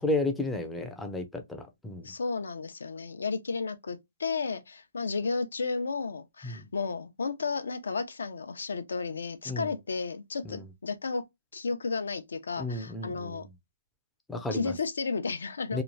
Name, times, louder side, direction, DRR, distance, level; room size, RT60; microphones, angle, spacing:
voice 1, 0.0-2.1 6.4-6.7 9.5-9.7 10.5-10.6 12.6-13.4 14.3-14.7 15.7-15.8, left 2 dB, 5° left, 0.3 m, -32 dB
voice 2, 2.0-11.2 11.5-13.5 14.5-15.8, left 4 dB, 90° left, 0.6 m, -33 dB
2.9 x 2.2 x 2.5 m
hypercardioid pair, 170°, 0 cm